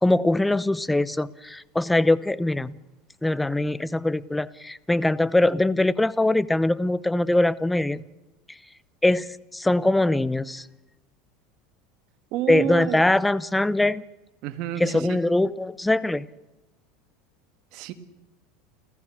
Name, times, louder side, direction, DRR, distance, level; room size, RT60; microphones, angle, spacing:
voice 1, 0.0-2.7 3.2-8.0 9.0-10.6 12.5-14.0 14.8-16.3, left 2 dB, 5° left, 0.7 m, -22 dB
voice 2, 12.3-13.0 14.4-15.2 17.7-17.9, right 12 dB, 60° right, 1.7 m, -30 dB
30.0 x 14.5 x 6.4 m
supercardioid pair, 115°, 0 cm